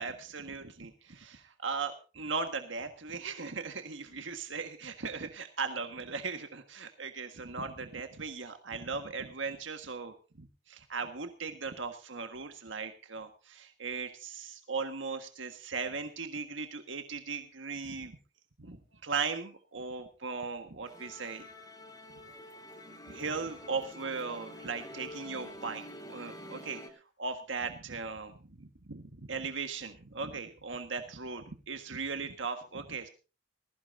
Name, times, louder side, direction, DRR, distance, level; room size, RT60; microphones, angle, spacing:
voice 1, 0.0-18.2 18.6-21.5 23.0-26.8 27.2-33.1, right 4 dB, 80° right, 6 dB, 1.6 m, -38 dB
Musical instrument, 20.9-26.9, left 1 dB, 20° left, 2.8 m, -47 dB
20.5 x 15.0 x 2.7 m, 0.33 s
head